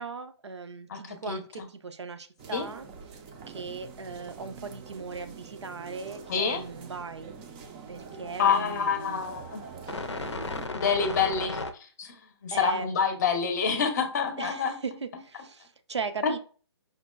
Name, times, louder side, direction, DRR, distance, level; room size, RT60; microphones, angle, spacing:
voice 1, 0.0-2.9 3.5-7.3 7.9-9.2 12.5-12.9 14.4-16.4, right 4 dB, 80° right, 9 dB, 0.5 m, -38 dB
voice 2, 0.9-1.7 2.5-2.7 6.3-6.6 8.4-9.6 10.7-12.1 12.4-14.8 16.2-16.4, left 6 dB, 40° left, 7 dB, 0.6 m, -27 dB
sound 1, 2.4-10.7, right 5 dB, 20° right, 0.4 m, -45 dB
sound 2, 7.9-11.7, left 3 dB, 85° left, 0.5 m, -37 dB
5.1 x 2.1 x 2.3 m, 0.38 s
figure-of-eight pair, 140°, 14 cm